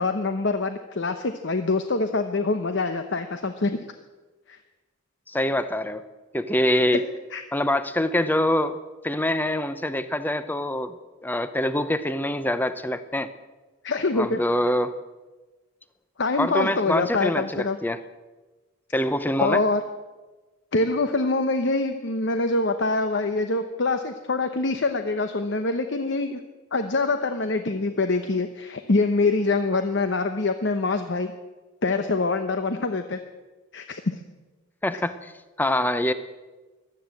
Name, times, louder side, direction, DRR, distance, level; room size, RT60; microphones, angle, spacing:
voice 1, 0.0-3.8 4.5-4.6 6.9-7.0 7.3-7.4 13.8-14.4 16.2-17.8 19.4-19.8 20.7-26.4 26.7-31.3 31.8-33.2 33.7-34.2, left 3 dB, 60° left, 8 dB, 0.8 m, -25 dB
voice 2, 5.3-6.0 6.3-7.0 7.5-8.8 9.0-11.0 11.2-13.3 14.1-14.9 16.4-18.0 18.9-19.6 34.8-35.3 35.6-36.1, left 1 dB, 10° left, 12 dB, 0.6 m, -24 dB
15.0 x 12.0 x 7.7 m, 1.2 s
head